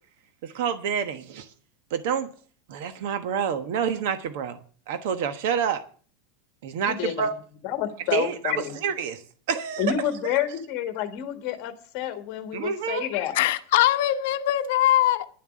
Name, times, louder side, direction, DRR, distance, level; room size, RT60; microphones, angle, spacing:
voice 1, 0.4-1.5 1.9-2.3 2.7-4.6 4.9-5.8 6.6-7.3 8.1-9.2 9.5-9.9 12.5-13.0, right 7 dB, 55° right, 1.1 m, -28 dB
voice 2, 6.9-7.3 7.6-8.8 9.8-13.4, left 10 dB, 35° left, 1.7 m, -29 dB
voice 3, 13.3-15.3, left 13 dB, 55° left, 0.9 m, -21 dB
11.0 x 7.3 x 8.6 m
supercardioid pair, 180°, 0 cm